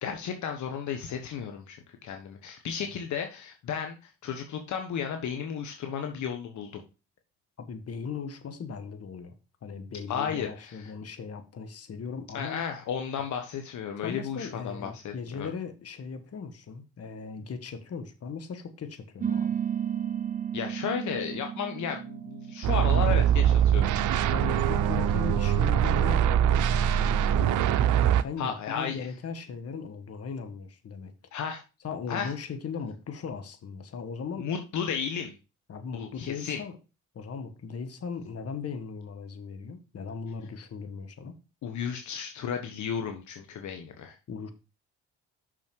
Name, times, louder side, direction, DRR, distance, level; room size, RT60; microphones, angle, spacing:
voice 1, 0.0-6.8 10.1-10.9 12.3-15.5 20.5-23.9 28.4-29.1 31.3-31.6 32.1-32.3 34.4-35.3 35.9-36.6 41.6-44.1, left 7 dB, 65° left, 1.3 m, -34 dB
voice 2, 7.6-9.3 9.6-12.6 14.0-19.6 24.3-31.1 31.8-34.5 35.7-36.8 37.1-41.3 44.3-44.5, left 5 dB, 50° left, 1.7 m, -38 dB
sound 1, 19.2-24.2, right 8 dB, 25° right, 1.0 m, -33 dB
sound 2, 22.6-28.2, right 9 dB, 70° right, 0.8 m, -23 dB
6.3 x 6.2 x 4.6 m
supercardioid pair, 70°, 31 cm